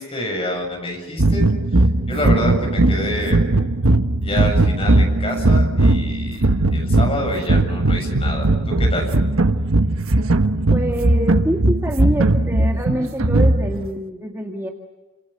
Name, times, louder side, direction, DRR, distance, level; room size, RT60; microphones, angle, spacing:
voice 1, 0.0-1.5 2.1-3.4 4.2-6.4 6.7-9.1, left 1 dB, 25° left, 2 dB, 7.4 m, -27 dB
sound 1, 1.2-13.9, right 2 dB, 80° right, 1.3 m, -18 dB
voice 2, 10.7-14.7, equal, 10° right, 2 dB, 1.8 m, -25 dB
29.5 x 26.5 x 6.8 m, 1.2 s
head